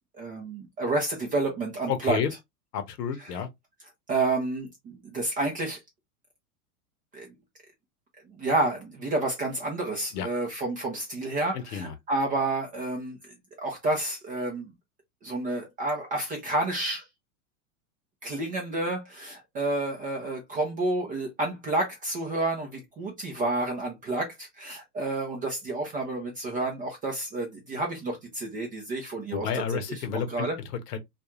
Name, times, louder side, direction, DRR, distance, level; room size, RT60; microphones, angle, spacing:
voice 1, 0.2-2.2 4.1-5.8 7.1-7.3 8.3-13.2 13.6-14.7 15.2-17.1 18.2-30.6, right 2 dB, 20° right, 0.4 m, -30 dB
voice 2, 1.9-2.3 2.7-3.5 10.1-10.3 11.5-11.9 29.3-31.0, left 7 dB, 85° left, 0.8 m, -31 dB
2.4 x 2.3 x 2.9 m
hypercardioid pair, 125°, 46 cm